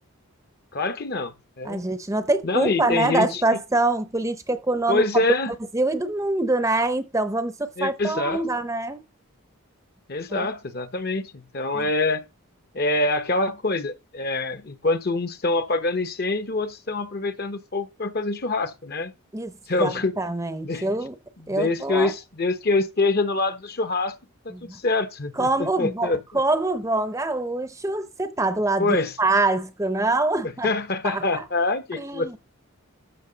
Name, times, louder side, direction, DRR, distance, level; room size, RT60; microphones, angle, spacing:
voice 1, 0.7-1.8 2.4-3.4 4.9-5.5 7.8-8.4 10.1-12.2 12.7-19.1 19.7-20.1 20.6-20.9 21.4-24.1 24.4-25.5 25.8-26.2 28.8-29.1 30.6-32.4, left 2 dB, 45° left, 0.9 m, -25 dB
voice 2, 1.6-5.0 5.5-9.0 10.3-10.5 11.7-11.9 19.3-19.5 19.8-21.2 21.5-22.1 24.5-24.8 25.4-30.8 31.0-31.4 31.9-32.4, right 2 dB, 15° right, 0.6 m, -25 dB
13.0 x 6.2 x 3.9 m
head